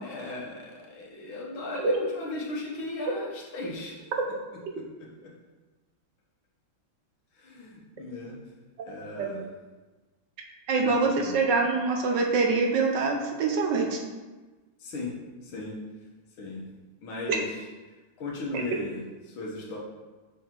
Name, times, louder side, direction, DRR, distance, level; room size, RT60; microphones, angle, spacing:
voice 1, 0.0-4.1 4.7-5.3 7.3-8.4 8.9-9.5 10.8-11.4 14.8-15.1 15.4-15.7 16.4-16.7 17.0-17.7 18.2-19.8, left 2 dB, 90° left, -4 dB, 1.9 m, -37 dB
voice 2, 10.7-14.0 17.3-17.4, right 4 dB, 70° right, 2 dB, 1.4 m, -24 dB
6.8 x 4.4 x 3.8 m, 1.2 s
omnidirectional pair, 2.2 m